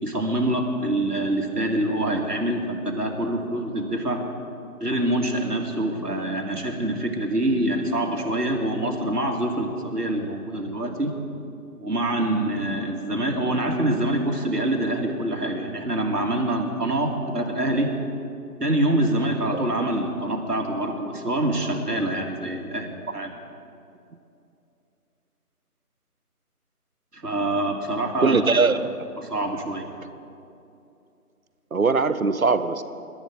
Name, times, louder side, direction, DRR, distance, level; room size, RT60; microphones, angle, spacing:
voice 1, 0.0-4.2 4.8-11.2 11.8-17.9 18.6-23.3 27.1-28.6 29.2-29.9, right 1 dB, 90° right, 1 dB, 2.9 m, -25 dB
voice 2, 28.2-28.8 31.7-32.8, right 4 dB, 65° right, 12 dB, 1.0 m, -21 dB
26.0 x 13.0 x 4.0 m, 2.7 s
figure-of-eight pair, 170°, 46 cm